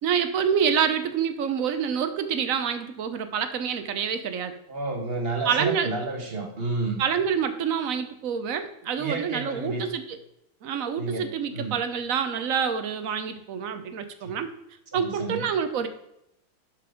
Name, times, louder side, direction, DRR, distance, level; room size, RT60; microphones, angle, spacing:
voice 1, 0.0-4.5 5.4-5.9 7.0-10.2 10.6-14.5 14.9-15.9, right 7 dB, 70° right, 9 dB, 0.8 m, -27 dB
voice 2, 4.7-7.0 9.0-9.9 10.9-11.8 14.2-14.3 14.9-15.5, right 3 dB, 30° right, 2 dB, 1.5 m, -31 dB
11.5 x 5.3 x 5.0 m, 0.84 s
omnidirectional pair, 2.4 m